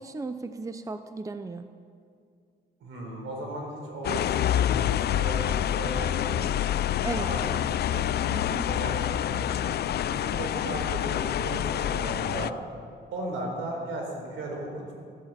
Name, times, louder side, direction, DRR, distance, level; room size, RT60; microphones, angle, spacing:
voice 1, 0.0-1.7 7.0-7.6 8.3-8.7, right 3 dB, 15° right, 10 dB, 0.7 m, -36 dB
voice 2, 2.8-6.5 7.1-8.1 8.7-9.8 10.1-12.5 13.1-14.9, right 2 dB, 80° right, 0 dB, 4.2 m, -36 dB
sound 1, 4.0-12.5, left 11 dB, 55° left, 0.4 m, -27 dB
14.0 x 11.0 x 7.5 m, 2.3 s
cardioid pair, 90°, 20 cm